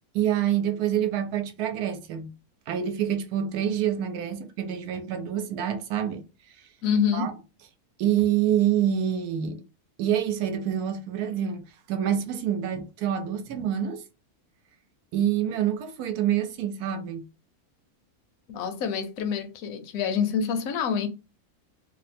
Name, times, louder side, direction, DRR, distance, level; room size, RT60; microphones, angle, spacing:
voice 1, 0.1-2.3 2.7-6.2 6.6-6.7 7.1-7.3 8.0-9.6 10.0-14.0 15.1-17.2, right 10 dB, 80° right, 1.1 m, -27 dB
voice 2, 6.8-7.3 18.5-21.1, left 7 dB, 70° left, 1.0 m, -26 dB
2.8 x 2.1 x 4.1 m
omnidirectional pair, 1.6 m